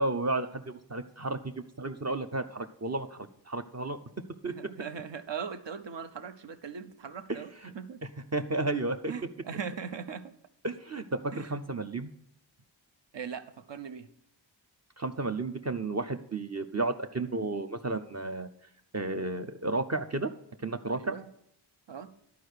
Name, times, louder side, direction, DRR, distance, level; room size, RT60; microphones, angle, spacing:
voice 1, 0.0-1.5 1.8-4.0 4.4-4.5 7.3-7.7 8.3-9.1 10.6-12.1 15.0-18.5 18.9-20.3 20.6-21.2, right 2 dB, 35° right, 6 dB, 0.6 m, -32 dB
voice 2, 4.4-8.0 9.1-10.3 11.3-11.5 13.1-14.1 21.0-21.3 21.9-22.1, right 6 dB, 65° right, 9 dB, 0.8 m, -40 dB
11.0 x 4.7 x 6.5 m, 0.73 s
wide cardioid pair, 50°, 46 cm